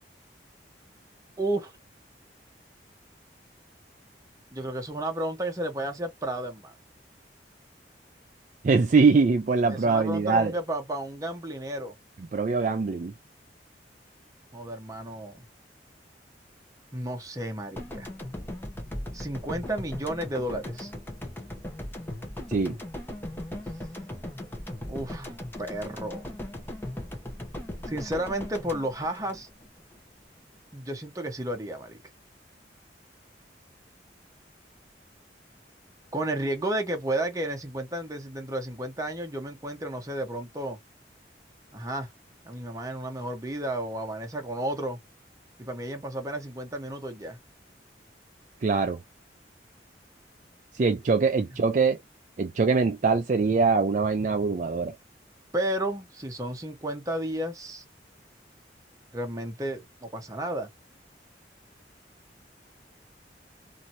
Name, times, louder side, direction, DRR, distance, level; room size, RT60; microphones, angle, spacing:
voice 1, 1.4-1.7 4.5-6.7 9.7-11.9 14.5-15.4 16.9-18.1 19.1-20.9 24.9-25.3 25.6-26.3 27.9-29.5 30.7-32.0 36.1-40.8 41.7-42.1 42.4-45.0 45.6-47.4 55.5-57.8 59.1-60.7, right 1 dB, 20° right, 0.9 m, -32 dB
voice 2, 8.6-10.5 12.3-13.1 22.5-22.8 48.6-49.0 50.7-52.0 52.4-54.9, right 4 dB, 45° right, 0.4 m, -23 dB
sound 1, 17.8-30.0, left 1 dB, 10° left, 0.8 m, -38 dB
2.9 x 2.7 x 2.5 m
head